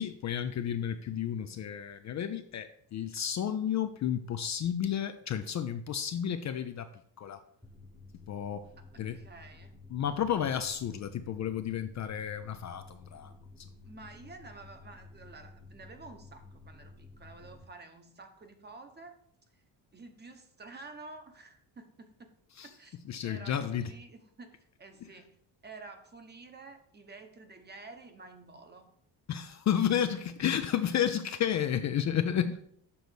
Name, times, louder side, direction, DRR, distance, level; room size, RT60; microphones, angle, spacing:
voice 1, 0.0-6.9 7.2-7.4 8.3-8.6 9.0-9.2 9.9-13.3 22.6-22.7 23.1-23.9 29.3-32.6, left 9 dB, 45° left, 9 dB, 0.4 m, -32 dB
sound 1, 7.6-17.6, left 3 dB, ahead, 1.1 m, -53 dB
voice 2, 8.9-9.8 13.8-19.2 19.5-19.6 19.9-22.3 22.6-25.4 25.6-28.9, right 3 dB, 25° right, 6 dB, 1.0 m, -50 dB
7.0 x 3.9 x 6.3 m, 0.68 s
cardioid pair, 130°, 42 cm